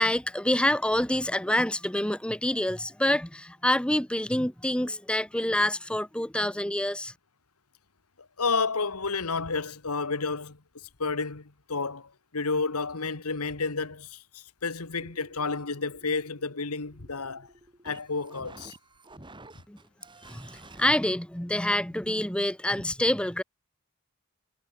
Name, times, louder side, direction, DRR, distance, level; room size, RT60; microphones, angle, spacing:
voice 1, 0.0-7.1 19.7-19.8 20.2-23.4, left 1 dB, 5° left, 0.8 m, -27 dB
voice 2, 8.2-17.5 17.8-18.7, left 4 dB, 90° left, 1.7 m, -31 dB
sound 1, 15.0-20.9, right 2 dB, 20° right, 3.2 m, -51 dB
head